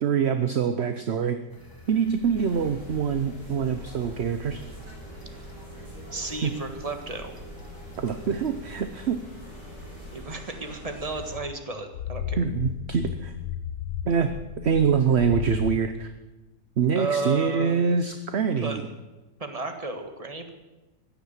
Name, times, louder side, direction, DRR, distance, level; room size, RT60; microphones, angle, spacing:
voice 1, 0.0-1.4 1.9-4.6 6.4-6.5 8.0-9.3 12.4-13.3 14.0-14.3 14.6-16.1 16.8-18.9, right 6 dB, 50° right, 9 dB, 0.9 m, -25 dB
sound 1, 1.5-10.2, equal, 10° left, 2.1 m, -47 dB
sound 2, 2.3-11.4, equal, 85° right, 7.4 m, -44 dB
voice 2, 6.1-7.3 10.1-12.4 16.9-17.8 18.6-18.8 19.4-20.5, right 3 dB, 20° right, 5 dB, 1.6 m, -32 dB
sound 3, 11.1-15.8, left 9 dB, 80° left, 1.3 m, -34 dB
15.5 x 11.0 x 7.4 m, 1.1 s
omnidirectional pair, 1.8 m